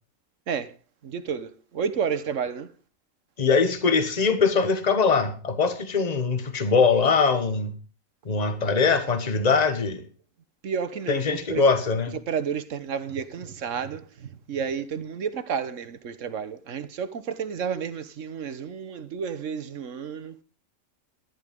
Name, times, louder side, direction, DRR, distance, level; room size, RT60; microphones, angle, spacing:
voice 1, 1.1-1.5 1.8-2.6 10.6-11.6 12.3-14.0 14.5-17.1 17.4-20.2, right 7 dB, 65° right, 1.4 m, -30 dB
voice 2, 3.4-7.7 8.2-10.0 11.1-12.2, left 4 dB, 30° left, 1.4 m, -22 dB
14.0 x 11.0 x 5.3 m
omnidirectional pair, 1.4 m